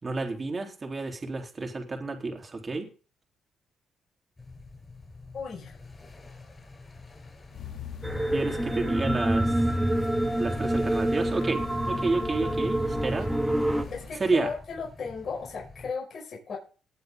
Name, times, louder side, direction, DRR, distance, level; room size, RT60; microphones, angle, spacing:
voice 1, 0.0-2.9 8.3-9.7 10.4-13.3 14.2-14.5, right 3 dB, 30° right, 3 dB, 3.6 m, -30 dB
sound 1, 4.4-15.9, left 3 dB, 25° left, 5.8 m, -48 dB
voice 2, 5.3-5.8 12.4-12.6 13.9-16.6, left 5 dB, 55° left, -1 dB, 5.7 m, -36 dB
sound 2, 7.5-14.2, left 7 dB, 70° left, 2.5 m, -42 dB
sound 3, 8.0-13.8, right 1 dB, 10° right, 2.3 m, -27 dB
20.0 x 7.6 x 3.8 m, 0.36 s
cardioid pair, 90°, 0 cm